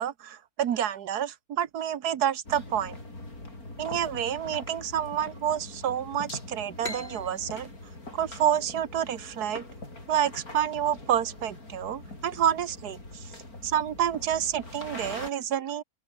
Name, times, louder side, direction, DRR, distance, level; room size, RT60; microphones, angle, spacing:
voice 1, 0.0-3.0 3.8-7.7 8.1-9.6 10.1-13.3 13.6-15.8, right 9 dB, 85° right, 1.6 m, -28 dB
sound 1, 2.4-15.3, left 2 dB, 65° left, 7.2 m, -43 dB
sound 2, 6.8-10.2, left 1 dB, 40° left, 6.8 m, -43 dB
open air
omnidirectional pair, 1.6 m